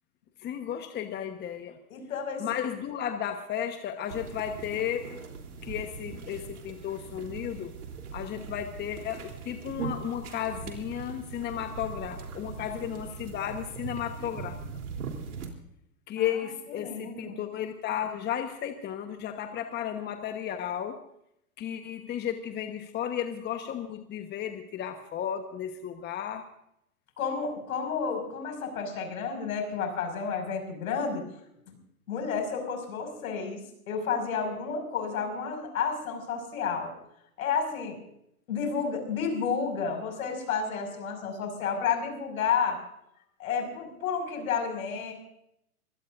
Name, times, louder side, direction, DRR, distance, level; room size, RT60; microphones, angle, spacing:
voice 1, 0.4-1.8 2.4-5.2 5.6-7.7 8.1-14.6 16.1-21.0 21.6-26.5, left 10 dB, 25° left, 7 dB, 1.2 m, -34 dB
voice 2, 1.9-2.5 16.2-16.3 16.8-17.3 27.2-31.2 32.1-33.6 33.9-36.9 37.4-38.0 38.5-42.8 43.4-45.1, left 6 dB, 65° left, 5 dB, 5.8 m, -31 dB
sound 1, 4.1-15.5, right 5 dB, 75° right, 3.5 m, -40 dB
24.5 x 17.0 x 2.6 m, 0.77 s
hypercardioid pair, 110°, 45 cm